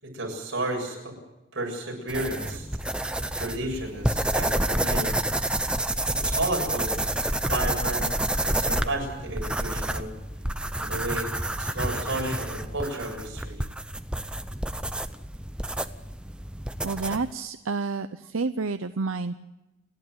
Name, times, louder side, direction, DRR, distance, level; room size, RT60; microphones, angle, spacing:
voice 1, 0.0-1.1 1.5-2.7 3.3-5.2 6.1-7.0 7.5-8.1 8.4-10.1 10.8-11.3 11.6-13.6, right 2 dB, 60° right, 0 dB, 7.4 m, -32 dB
sound 1, 2.1-17.3, right 1 dB, 5° right, 0.7 m, -29 dB
voice 2, 16.8-19.4, right 4 dB, 85° right, 10 dB, 0.7 m, -29 dB
29.5 x 11.5 x 9.3 m, 0.99 s
head